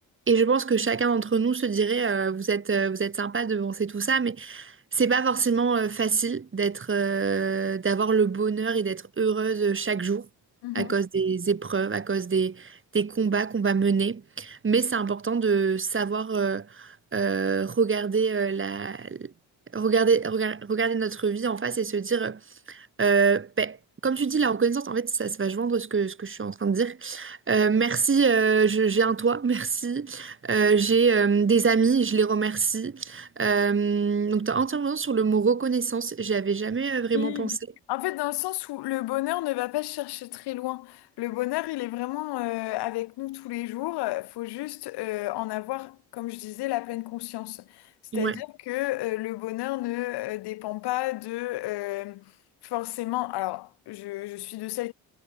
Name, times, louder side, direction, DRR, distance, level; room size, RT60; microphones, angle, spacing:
voice 1, 0.3-10.3 10.7-19.3 19.7-22.4 22.7-23.8 24.0-37.6 48.1-48.4, right 5 dB, 30° right, 2.1 m, -25 dB
voice 2, 10.6-10.9 37.1-37.6 37.9-47.9 48.1-52.2 52.6-54.9, left 18 dB, 85° left, 2.5 m, -31 dB
supercardioid pair, 70°, 39 cm